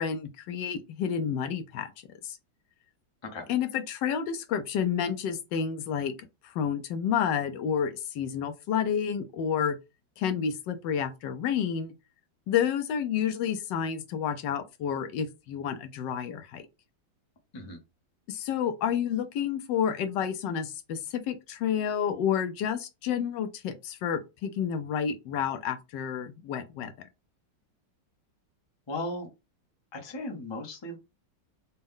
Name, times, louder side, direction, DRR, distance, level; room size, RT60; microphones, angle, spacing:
voice 1, 0.0-2.4 3.5-6.1 6.4-9.8 10.2-11.9 12.5-16.7 18.3-27.1, left 8 dB, 75° left, 1.2 m, -30 dB
voice 2, 28.9-29.3 29.9-31.0, left 2 dB, 35° left, 0.4 m, -36 dB
4.1 x 2.2 x 3.6 m
omnidirectional pair, 2.1 m